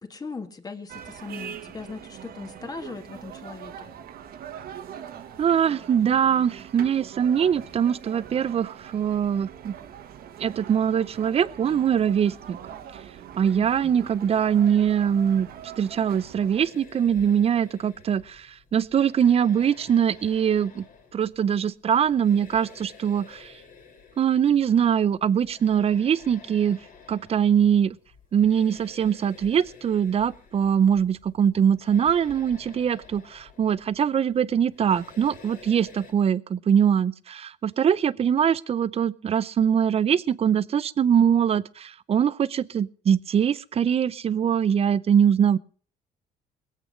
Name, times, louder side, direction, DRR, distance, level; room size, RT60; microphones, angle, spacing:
voice 1, 0.0-3.9 13.6-14.1, left 4 dB, 20° left, 7 dB, 1.8 m, -39 dB
sound 1, 0.9-16.7, right 9 dB, 60° right, 1.3 m, -42 dB
voice 2, 5.4-9.8 10.4-12.6 13.4-15.5 15.8-20.9 21.1-23.5 24.2-26.8 27.1-28.0 28.3-45.6, right 8 dB, 35° right, 18 dB, 0.6 m, -22 dB
sound 2, 16.6-36.1, left 5 dB, 55° left, 3.0 m, -51 dB
21.0 x 8.3 x 5.2 m, 0.44 s
cardioid pair, 110°, 17 cm